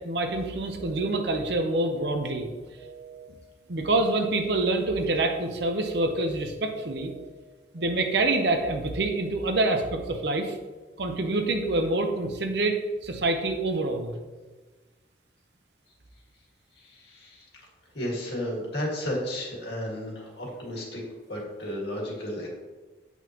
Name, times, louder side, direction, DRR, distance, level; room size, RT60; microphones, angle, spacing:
voice 1, 0.0-2.5 3.7-7.1 7.7-10.6 11.0-14.1, right 2 dB, 65° right, 5 dB, 0.8 m, -26 dB
sound 1, 0.8-1.3 1.8-2.3 2.8-3.3 3.8-4.3 4.8-5.3 5.8-6.3 6.8-7.3 7.8-8.3 8.8-9.3 9.8-10.3, right 7 dB, 40° right, 1.1 m, -46 dB
voice 2, 16.8-17.4 17.9-21.0 21.3-22.5, left 1 dB, 65° left, -2 dB, 1.9 m, -33 dB
8.2 x 5.5 x 3.0 m, 1.3 s
head